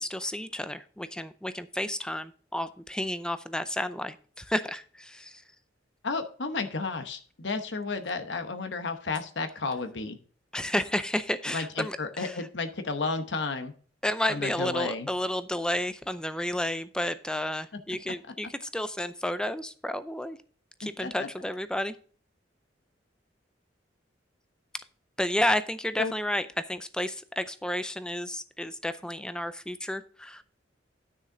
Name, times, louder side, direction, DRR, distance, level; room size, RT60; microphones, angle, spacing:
voice 1, 0.0-5.4 10.5-12.4 14.0-20.4 20.8-22.0 25.2-30.4, left 1 dB, 5° left, 12 dB, 0.5 m, -31 dB
voice 2, 6.0-10.2 11.5-13.7 14.3-15.1 18.0-18.1 21.0-21.3 26.0-26.1, left 4 dB, 70° left, 8 dB, 1.0 m, -32 dB
10.0 x 6.4 x 3.8 m, 0.42 s
head